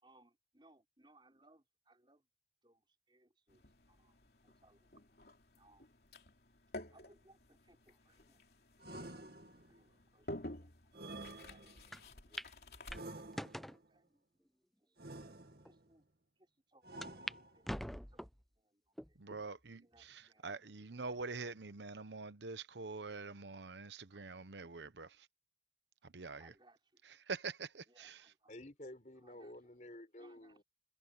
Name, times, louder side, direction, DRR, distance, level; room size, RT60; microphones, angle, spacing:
voice 1, 0.0-2.2 2.6-2.8 3.1-4.2 4.4-4.9 5.6-5.9 6.9-8.4 9.5-10.3 10.6-10.7 11.4-12.6 13.6-14.0 15.7-16.0 16.7-18.3 18.6-19.2 19.7-20.5 24.1-24.2 26.4-26.8 27.9-28.5 29.2-29.5 30.2-30.5, right 2 dB, 25° right, 5.5 m, -68 dB
sound 1, 3.5-13.3, left 1 dB, 60° left, 3.3 m, -52 dB
sound 2, 8.8-9.9 10.9-12.0 12.9-13.9 15.0-15.9 16.8-17.8, right 2 dB, 60° right, 2.3 m, -50 dB
sound 3, 11.9-12.0 12.4-12.5 12.9-13.8 14.5-14.6 15.3-15.4 15.6-15.7 17.0-17.4 17.6-18.4 19.0-19.4 20.0-20.1 21.2-21.6, equal, ahead, 0.3 m, -44 dB
voice 2, 19.2-25.3 26.0-26.6 27.0-28.3, right 4 dB, 80° right, 1.0 m, -45 dB
voice 3, 28.5-30.6, left 1 dB, 40° left, 5.3 m, -51 dB
head